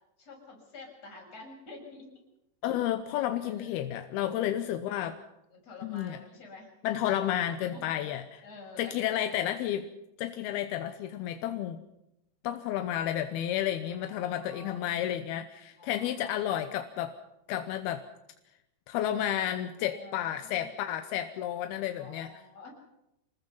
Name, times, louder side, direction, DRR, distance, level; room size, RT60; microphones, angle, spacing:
voice 1, 0.2-2.2 3.4-3.8 4.3-4.4 5.5-6.7 7.0-7.1 7.7-7.8 8.4-9.4 13.9-14.8 15.8-16.3 19.8-20.7 22.0-22.7, left 3 dB, 35° left, -1 dB, 7.7 m, -49 dB
voice 2, 2.6-5.2 5.8-6.2 6.8-8.2 8.8-9.9 10.2-11.8 12.4-17.1 17.5-18.0 18.9-22.3, left 11 dB, 75° left, 8 dB, 2.4 m, -31 dB
27.5 x 20.0 x 5.7 m, 0.87 s
omnidirectional pair, 5.4 m